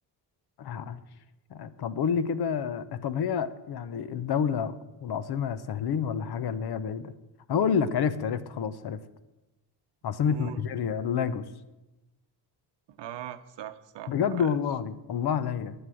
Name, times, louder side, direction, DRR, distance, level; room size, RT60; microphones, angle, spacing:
voice 1, 0.6-1.0 1.5-7.1 7.5-9.0 10.0-11.5 14.1-15.7, left 7 dB, 65° left, 13 dB, 1.0 m, -29 dB
voice 2, 10.2-10.6 12.9-14.5, right 11 dB, 75° right, 11 dB, 1.0 m, -41 dB
11.0 x 8.1 x 7.7 m, 1.0 s
cardioid pair, 90°, 42 cm